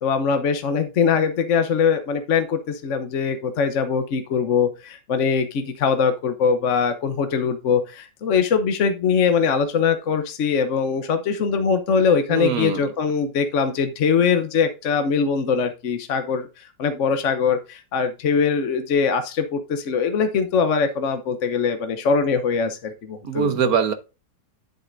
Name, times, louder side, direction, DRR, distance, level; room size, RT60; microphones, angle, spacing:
voice 1, 0.0-16.5 16.8-23.5, left 6 dB, 55° left, 1.0 m, -22 dB
voice 2, 12.3-12.9 23.2-23.9, right 6 dB, 60° right, 1.3 m, -22 dB
11.0 x 6.7 x 2.6 m
omnidirectional pair, 1.9 m